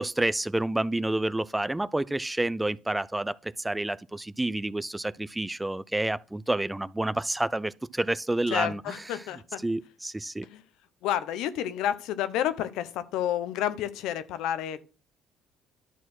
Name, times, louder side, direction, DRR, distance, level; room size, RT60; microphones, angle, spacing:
voice 1, 0.0-9.2 9.6-10.5, right 1 dB, 10° right, 0.3 m, -29 dB
voice 2, 8.5-9.6 10.5-10.6 11.0-14.8, left 11 dB, 85° left, 0.7 m, -30 dB
11.0 x 4.3 x 6.0 m
cardioid pair, 100°, 0 cm